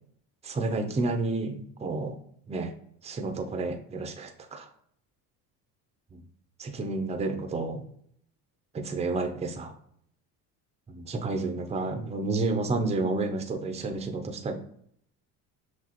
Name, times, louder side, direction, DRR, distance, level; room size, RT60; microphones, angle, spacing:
voice 1, 0.4-2.2 2.5-2.7 3.0-4.7 6.1-6.2 6.6-7.8 8.7-9.7 10.9-14.6, right 3 dB, 15° right, 5 dB, 0.5 m, -30 dB
6.2 x 2.3 x 2.9 m, 0.66 s
cardioid pair, 115°, 41 cm